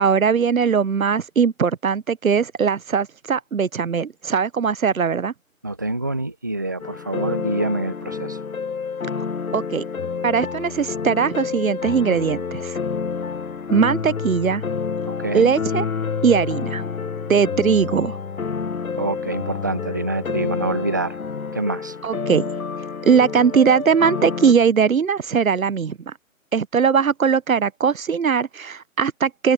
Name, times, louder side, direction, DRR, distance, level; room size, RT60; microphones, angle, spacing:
voice 1, 0.0-5.3 9.5-9.8 10.2-12.8 13.7-14.6 15.3-15.9 16.2-16.8 17.3-18.2 22.0-22.4 23.0-26.1 26.5-29.5, right 6 dB, 75° right, 0.8 m, -20 dB
voice 2, 5.6-8.4 15.2-15.5 19.0-21.2 21.5-22.0, right 2 dB, 15° right, 0.6 m, -26 dB
sound 1, 6.8-24.5, left 5 dB, 80° left, 0.9 m, -28 dB
open air
figure-of-eight pair, 145°, 42 cm